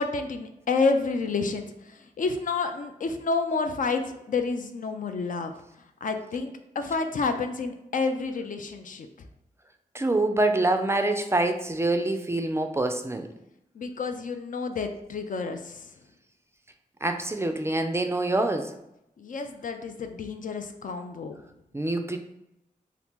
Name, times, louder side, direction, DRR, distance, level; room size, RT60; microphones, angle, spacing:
voice 1, 0.0-5.5 6.0-9.3 13.8-15.9 19.2-21.4, left 4 dB, 60° left, 6 dB, 0.4 m, -29 dB
voice 2, 9.9-13.3 17.0-18.7 21.7-22.2, right 2 dB, 15° right, 6 dB, 0.3 m, -25 dB
2.8 x 2.5 x 3.5 m, 0.84 s
cardioid pair, 65°, 15 cm